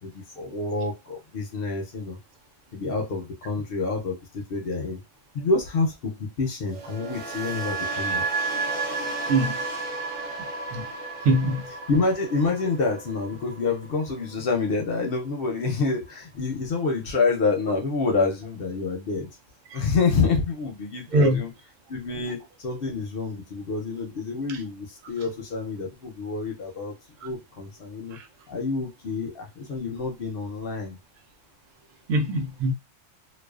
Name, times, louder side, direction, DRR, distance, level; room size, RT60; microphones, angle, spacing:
voice 1, 0.0-2.2 2.7-5.0 5.3-8.2 11.9-19.4 19.7-21.5 21.9-27.0 27.2-28.2 28.5-31.0, left 4 dB, 60° left, 0.7 m, -27 dB
sound 1, 6.7-14.8 15.0-15.4, right 3 dB, 55° right, 0.7 m, -32 dB
voice 2, 11.2-11.6 19.7-19.8 21.1-21.4 24.5-24.6 28.1-28.3 32.1-32.7, right 2 dB, 85° right, 1.0 m, -22 dB
2.4 x 2.3 x 2.3 m
omnidirectional pair, 1.3 m